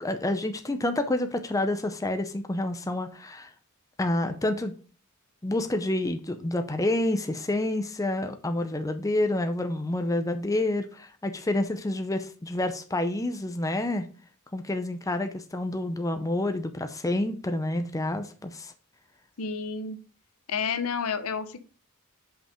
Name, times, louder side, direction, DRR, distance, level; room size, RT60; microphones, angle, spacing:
voice 1, 0.0-3.5 4.0-4.7 5.4-14.1 14.5-18.7, left 1 dB, 15° left, 7 dB, 0.6 m, -28 dB
voice 2, 19.4-20.0 20.5-21.6, left 5 dB, 70° left, 11 dB, 0.8 m, -30 dB
5.8 x 5.5 x 5.1 m, 0.37 s
head